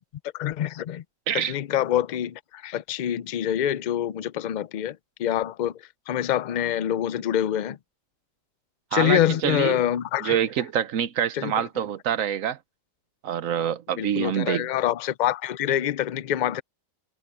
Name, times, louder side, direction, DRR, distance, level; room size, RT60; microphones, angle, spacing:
voice 1, 0.3-1.0 1.3-7.8 8.9-10.4 11.3-11.7 14.0-16.6, left 11 dB, 85° left, 0.4 m, -26 dB
voice 2, 8.9-9.8 10.2-12.6 13.2-14.7, right 9 dB, 85° right, 1.2 m, -26 dB
omnidirectional pair, 1.4 m